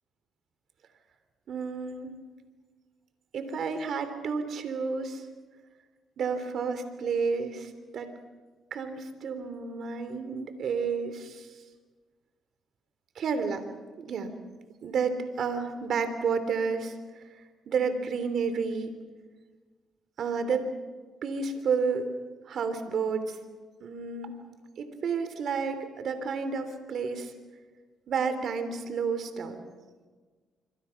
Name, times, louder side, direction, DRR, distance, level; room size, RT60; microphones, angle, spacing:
voice 1, 1.5-2.2 3.3-5.2 6.2-8.1 8.7-11.5 13.1-13.6 14.0-14.3 14.8-16.9 17.7-19.0 20.2-20.6 21.2-22.1 22.4-23.4 23.8-24.4 24.8-27.3 28.1-29.6, right 5 dB, 65° right, 9 dB, 3.2 m, -31 dB
26.5 x 25.5 x 5.9 m, 1.4 s
cardioid pair, 90°, 0 cm